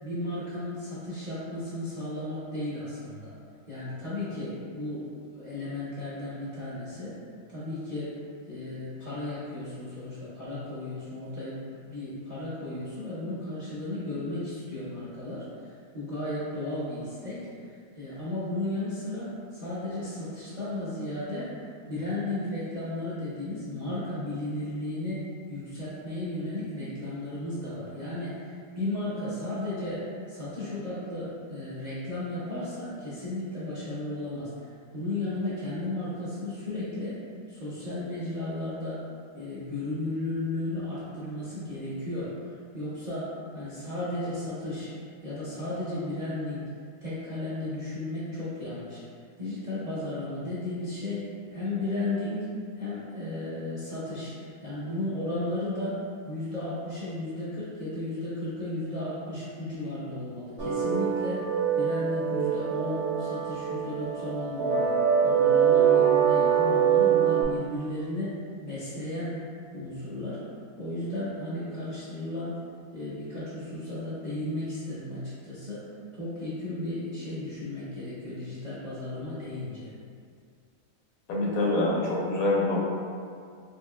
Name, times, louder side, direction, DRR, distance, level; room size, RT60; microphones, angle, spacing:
voice 1, 0.0-3.3 3.7-7.2 7.5-8.2 8.5-21.5 21.9-34.5 34.9-39.0 39.3-42.3 42.7-44.9 45.2-46.6 47.0-49.0 49.4-52.5 52.7-61.4 61.8-64.9 65.2-69.4 69.7-70.4 70.8-72.5 72.9-75.9 76.1-79.9, left 1 dB, 40° right, -11 dB, 0.6 m, -34 dB
sound 1, 60.6-67.4, right 8 dB, 75° right, 1.2 m, -24 dB
voice 2, 81.3-82.8, left 2 dB, 75° left, -4 dB, 1.1 m, -25 dB
4.3 x 2.8 x 2.2 m, 2.2 s
omnidirectional pair, 1.6 m